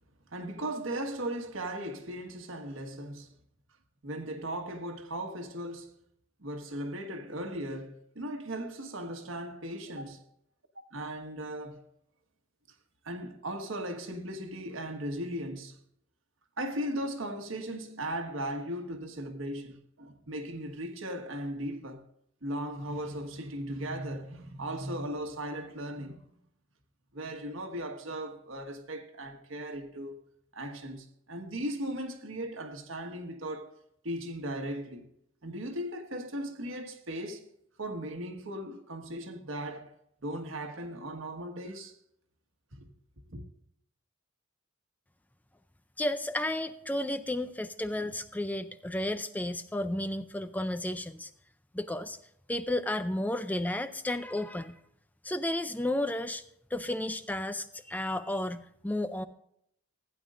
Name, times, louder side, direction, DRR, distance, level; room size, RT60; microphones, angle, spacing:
voice 1, 0.3-3.3 4.0-5.9 6.4-10.2 10.9-11.8 13.0-15.8 16.6-22.0 22.4-26.2 27.1-30.2 30.5-33.8 34.0-35.1 35.4-37.4 37.8-39.9 40.2-41.9 42.7-42.9 43.3-43.4, right 1 dB, 85° right, 1.5 m, -37 dB
voice 2, 46.0-51.3 51.7-52.2 52.5-54.8 55.2-56.4 56.7-59.2, left 1 dB, 10° left, 0.4 m, -32 dB
15.5 x 9.8 x 2.5 m
head